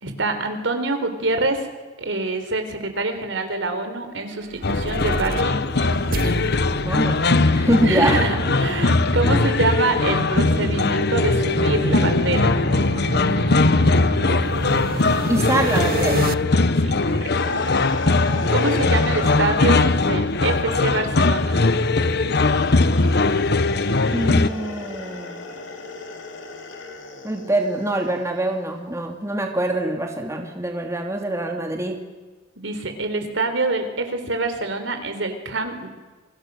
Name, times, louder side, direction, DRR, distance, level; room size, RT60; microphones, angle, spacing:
voice 1, 0.0-1.7 2.0-6.0 7.8-12.5 16.8-17.2 17.4-17.6 18.5-21.6 32.6-35.9, right 2 dB, 80° right, 7 dB, 4.1 m, -25 dB
sound 1, 4.3-16.3, right 3 dB, 50° right, 0.7 m, -31 dB
sound 2, 4.6-24.5, left 3 dB, 60° left, 1.1 m, -20 dB
voice 2, 6.8-8.2 15.3-16.3 24.1-25.4 27.2-32.0, right 1 dB, 15° right, 2 dB, 2.7 m, -24 dB
sound 3, 17.3-19.5 22.5-28.1, left 3 dB, 80° left, 3.2 m, -33 dB
28.5 x 25.0 x 6.5 m, 1.3 s
head